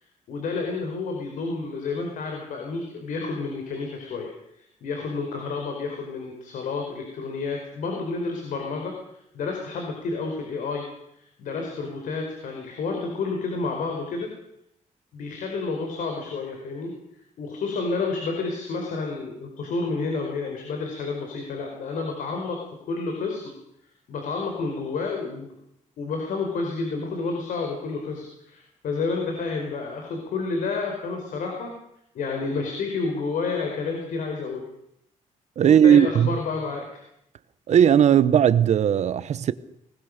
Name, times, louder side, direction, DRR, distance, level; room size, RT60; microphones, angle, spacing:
voice 1, 0.3-4.3 4.6-10.8 11.1-14.3 15.1-17.0 17.4-23.6 24.1-25.6 26.0-31.8 32.1-34.7 35.6-37.0, left 4 dB, 75° left, 4.8 m, -30 dB
voice 2, 35.6-36.4 37.7-39.5, right 9 dB, 55° right, 1.0 m, -17 dB
24.5 x 20.0 x 6.7 m
cardioid pair, 160°, 14 cm